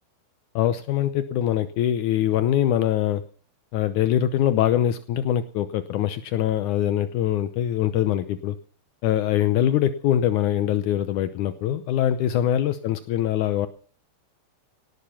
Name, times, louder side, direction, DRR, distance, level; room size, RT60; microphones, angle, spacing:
voice 1, 0.5-3.2 3.7-8.6 9.0-13.7, left 11 dB, 80° left, 12 dB, 1.7 m, -23 dB
18.0 x 12.0 x 5.8 m, 0.42 s
omnidirectional pair, 4.6 m